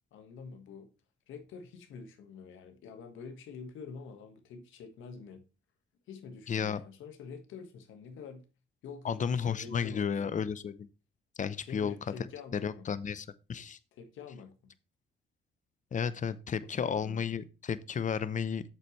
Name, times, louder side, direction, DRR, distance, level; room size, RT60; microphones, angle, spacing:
voice 1, 0.1-0.9 1.3-5.4 6.1-8.5 8.8-10.3 11.6-12.9 13.9-14.7 16.6-17.2, left 5 dB, 85° left, 1.6 m, -47 dB
voice 2, 6.5-6.8 9.0-10.9 11.4-13.8 15.9-18.6, left 7 dB, 40° left, 0.7 m, -33 dB
9.0 x 7.0 x 3.2 m
cardioid pair, 90°, 20 cm